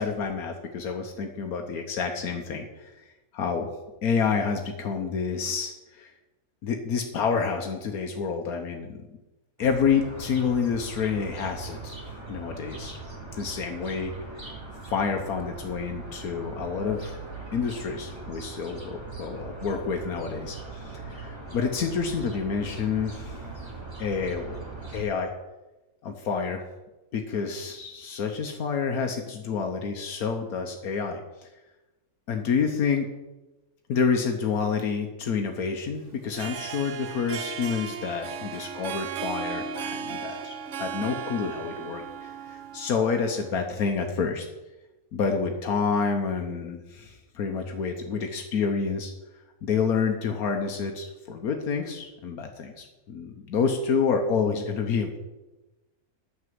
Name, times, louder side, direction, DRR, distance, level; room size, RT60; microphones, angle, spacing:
voice 1, 0.0-3.1 3.3-3.7 4.0-6.1 6.6-9.0 9.6-12.0 12.3-13.0 13.3-14.1 14.9-17.2 17.5-23.4 24.0-24.6 24.9-25.3 26.0-26.6 27.1-31.5 32.3-33.1 33.9-44.5 45.1-49.1 49.6-55.2, left 5 dB, 80° left, 4 dB, 1.4 m, -28 dB
sound 1, 9.6-25.0, right 3 dB, 20° right, 2.0 m, -40 dB
Harp, 36.2-43.5, right 7 dB, 60° right, 1.0 m, -36 dB
9.6 x 6.1 x 7.7 m, 1.1 s
omnidirectional pair, 1.5 m